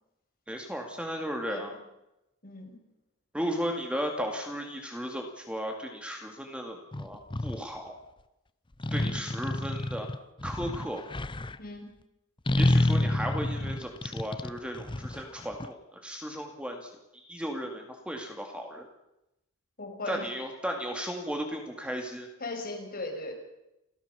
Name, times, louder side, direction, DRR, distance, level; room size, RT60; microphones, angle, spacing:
voice 1, 0.5-1.7 3.3-8.0 8.9-10.1 10.4-11.0 12.6-18.9 20.1-22.3, equal, 5° right, 2 dB, 2.4 m, -35 dB
voice 2, 2.4-2.8 8.9-9.2 11.6-11.9 19.8-20.3 22.4-23.3, left 2 dB, 45° left, 1 dB, 6.3 m, -38 dB
sound 1, 6.9-7.6 8.8-11.6 12.5-15.7, left 1 dB, 25° left, 0.7 m, -28 dB
30.0 x 15.0 x 7.0 m, 0.91 s
head